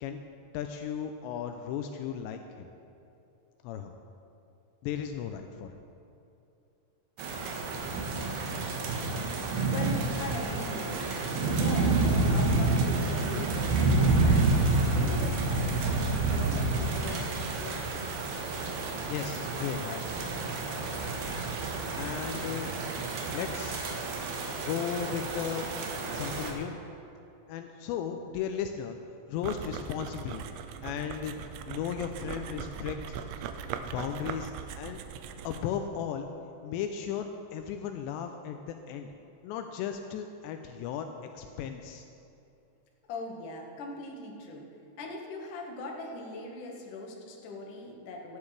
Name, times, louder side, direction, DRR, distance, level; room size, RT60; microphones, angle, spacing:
voice 1, 0.5-2.7 3.6-3.9 4.8-5.8 19.1-20.3 21.9-22.7 23.3-23.9 24.6-25.7 26.1-26.8 27.5-29.0 29.3-30.4 30.8-31.4 31.7-33.2 33.8-35.0 35.4-36.3 36.6-39.1 39.4-41.1 41.3-42.0, left 8 dB, 90° left, 6 dB, 2.5 m, -35 dB
sound 1, 7.2-26.5, right 3 dB, 70° right, 2.8 m, -29 dB
voice 2, 9.4-11.0 11.4-18.5 43.1-44.7 45.0-48.4, left 2 dB, 65° left, 0 dB, 2.2 m, -40 dB
sound 2, 29.4-35.8, right 8 dB, 85° right, 2.8 m, -40 dB
18.0 x 11.5 x 3.3 m, 2.8 s
omnidirectional pair, 5.6 m